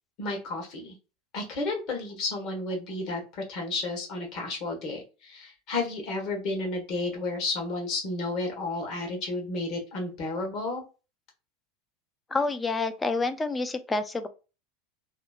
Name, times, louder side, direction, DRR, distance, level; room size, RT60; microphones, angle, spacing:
voice 1, 0.2-0.9 1.3-10.8, left 2 dB, 50° left, 1.2 m, -32 dB
voice 2, 12.3-14.3, left 3 dB, 15° left, 0.4 m, -28 dB
2.9 x 2.0 x 2.3 m
supercardioid pair, 125°, 0 cm